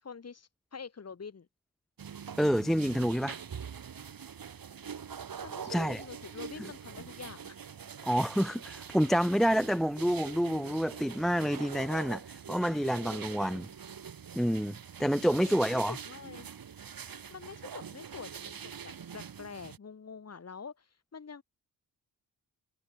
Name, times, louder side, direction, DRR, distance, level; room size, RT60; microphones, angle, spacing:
voice 1, 0.0-1.5 5.4-7.6 15.3-16.5 17.3-18.6 18.8-21.4, left 5 dB, 40° left, 2.9 m, -46 dB
sound 1, 2.0-19.8, right 7 dB, 60° right, 6.0 m, -44 dB
voice 2, 2.4-3.4 5.7-6.0 8.0-13.7 14.3-15.9, equal, ahead, 0.4 m, -28 dB
wide cardioid pair, 120°, 40 cm